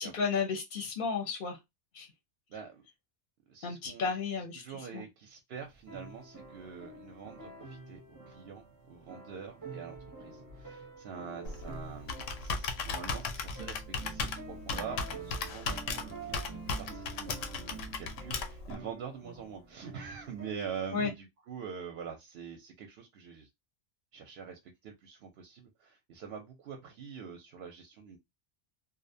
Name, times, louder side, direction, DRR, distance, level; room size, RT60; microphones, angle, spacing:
voice 1, 0.0-1.6 1.9-2.1 3.6-4.6 4.9-5.0 20.9-21.1, left 5 dB, 50° left, 0.7 m, -33 dB
voice 2, 2.5-2.8 3.5-4.1 4.5-23.5 24.1-28.2, right 7 dB, 65° right, 0.7 m, -45 dB
sound 1, 5.7-21.1, right 3 dB, 20° right, 0.6 m, -48 dB
Computer keyboard, 11.4-18.8, left 4 dB, 80° left, 0.9 m, -37 dB
2.6 x 2.1 x 2.6 m
omnidirectional pair, 1.3 m